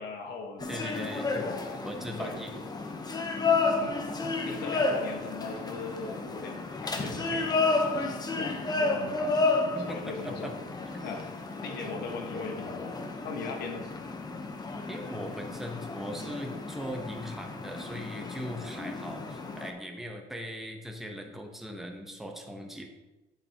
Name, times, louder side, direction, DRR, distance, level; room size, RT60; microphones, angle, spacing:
voice 1, 0.0-1.8 2.2-2.3 3.8-4.0 4.4-9.4 9.9-10.5 11.0-11.2 11.6-13.0 13.2-13.9, left 4 dB, 75° left, 3 dB, 1.4 m, -40 dB
sound 1, 0.6-19.7, left 3 dB, 25° left, 0.9 m, -32 dB
voice 2, 0.7-1.4 1.8-2.6 9.7-10.5 10.9-11.1 14.9-22.8, equal, ahead, 2 dB, 1.0 m, -39 dB
8.6 x 7.2 x 2.9 m, 1.1 s
cardioid pair, 110°, 17 cm